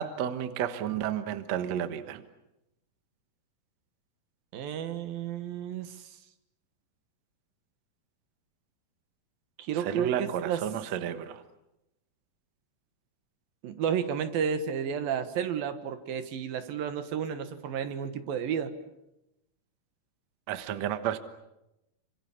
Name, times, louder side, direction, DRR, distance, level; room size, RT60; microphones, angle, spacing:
voice 1, 0.0-2.2 9.8-11.4 20.5-21.2, right 10 dB, 60° right, 2.1 m, -31 dB
voice 2, 4.5-6.2 9.6-10.6 13.6-18.7, right 8 dB, 75° right, 3.2 m, -32 dB
27.5 x 26.0 x 7.2 m
omnidirectional pair, 4.2 m